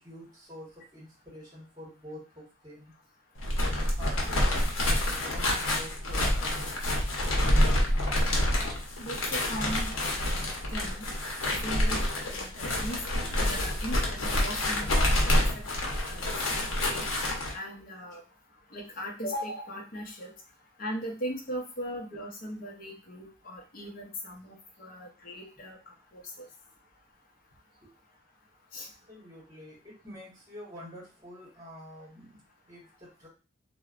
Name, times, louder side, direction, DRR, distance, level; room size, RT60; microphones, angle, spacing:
voice 1, 0.0-2.9 3.6-7.0 27.8-27.9 28.7-33.3, equal, 20° right, -4 dB, 1.1 m, -47 dB
sound 1, 3.4-17.5, left 1 dB, 90° left, 0.7 m, -27 dB
voice 2, 9.0-9.9 10.2-11.0 11.5-12.0 12.2-13.0 13.4-15.1 15.4-15.6 16.0-16.2 16.6-17.1 17.5-18.2 18.7-20.3 20.8-25.8 26.1-26.5 28.7-28.9, equal, 45° left, -1 dB, 0.6 m, -38 dB
3.0 x 2.1 x 2.4 m, 0.32 s
head